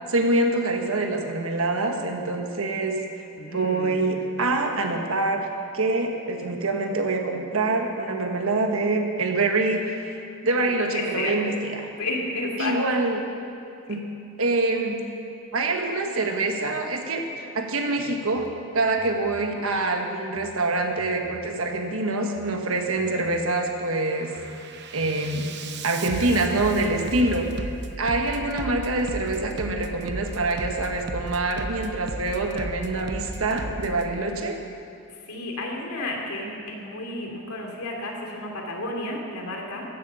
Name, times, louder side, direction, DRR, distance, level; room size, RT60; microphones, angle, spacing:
voice 1, 0.1-3.0 3.5-5.4 5.7-10.2 10.4-11.9 12.6-13.2 13.9-14.0 14.4-15.0 15.5-18.5 18.7-24.3 24.9-25.5 25.8-27.7 28.0-34.6, right 2 dB, 65° right, 3 dB, 1.3 m, -25 dB
voice 2, 3.4-4.1 10.9-11.3 12.0-12.8 13.9-14.0 35.2-39.9, left 2 dB, 85° left, 0 dB, 2.7 m, -32 dB
Bass drum, 18.3-18.5 19.0-19.4 20.2-20.5 21.0-21.5 22.2-22.5 23.0-23.5 23.9-34.1, right 2 dB, 50° right, 0.8 m, -36 dB
15.0 x 11.0 x 6.8 m, 2.6 s
head